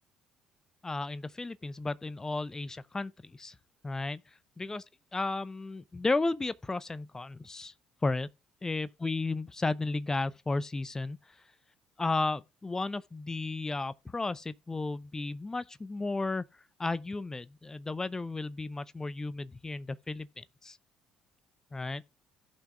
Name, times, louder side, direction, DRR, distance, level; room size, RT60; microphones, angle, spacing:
voice 1, 0.8-3.5 3.8-4.2 4.6-4.8 5.1-7.7 8.0-8.3 8.6-11.2 12.0-16.4 16.8-20.8 21.7-22.0, left 3 dB, 15° left, 0.5 m, -33 dB
16.5 x 5.8 x 2.3 m
figure-of-eight pair, 50°, 3 cm